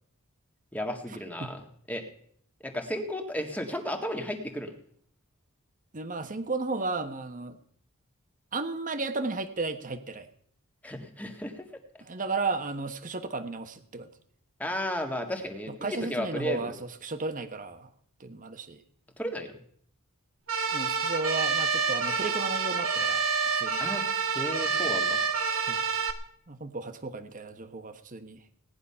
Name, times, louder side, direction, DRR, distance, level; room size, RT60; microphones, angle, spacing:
voice 1, 0.7-1.6 1.9-2.0 2.6-4.7 10.8-11.6 14.6-16.7 19.2-19.6 23.8-24.0 24.3-25.2, equal, 5° left, 4 dB, 1.7 m, -34 dB
voice 2, 5.9-7.6 8.5-10.3 12.0-14.1 15.8-17.9 18.2-18.8 20.7-23.3 23.5-23.8 25.7-25.8 26.5-28.4, right 3 dB, 40° right, 9 dB, 1.2 m, -34 dB
sound 1, 20.5-26.1, right 5 dB, 65° right, 1.4 m, -28 dB
18.0 x 10.5 x 5.7 m, 0.63 s
head